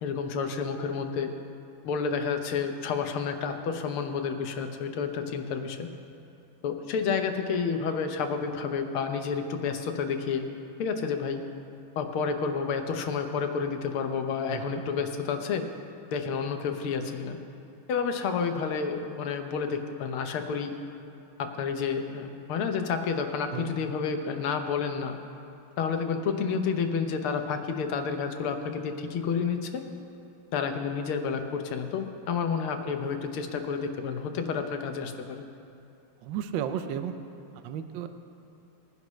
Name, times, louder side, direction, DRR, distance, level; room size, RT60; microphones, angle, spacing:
voice 1, 0.0-1.3 1.9-5.9 6.6-10.4 10.8-11.4 12.0-15.7 16.1-17.4 17.9-20.8 21.4-25.2 25.8-29.8 30.5-35.4, left 6 dB, 85° left, 6 dB, 1.8 m, -30 dB
voice 2, 14.5-14.8 23.5-23.7 36.2-37.1 37.5-38.1, right 9 dB, 70° right, 8 dB, 1.3 m, -33 dB
21.5 x 11.0 x 3.2 m, 2.7 s
omnidirectional pair, 2.3 m